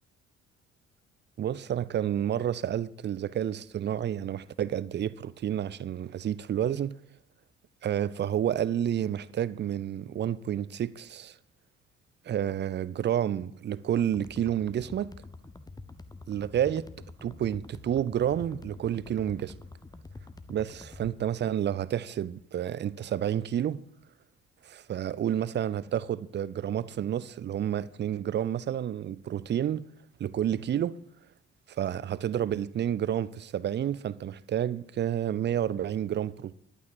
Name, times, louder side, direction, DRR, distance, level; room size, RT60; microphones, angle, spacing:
voice 1, 1.4-7.0 7.8-11.4 12.3-15.1 16.3-16.9 17.2-19.6 20.5-23.8 24.6-29.9 30.2-31.0 31.7-36.5, right 10 dB, 30° right, 0.5 m, -30 dB
sound 1, 14.1-21.2, left 3 dB, 10° left, 0.9 m, -47 dB
12.0 x 8.7 x 4.7 m
figure-of-eight pair, 45°, 36 cm